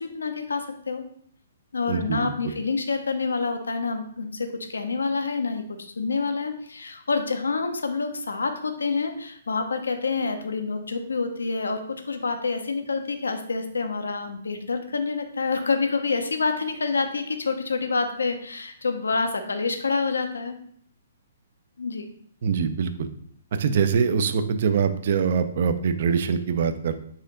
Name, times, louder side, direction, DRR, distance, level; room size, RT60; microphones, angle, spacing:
voice 1, 0.0-1.0 1.7-20.6 21.8-22.1, left 4 dB, 90° left, 7 dB, 0.6 m, -27 dB
voice 2, 1.9-2.3 22.4-23.1 23.5-26.9, right 6 dB, 60° right, 10 dB, 0.4 m, -23 dB
4.2 x 2.6 x 3.7 m, 0.64 s
hypercardioid pair, 135°, 0 cm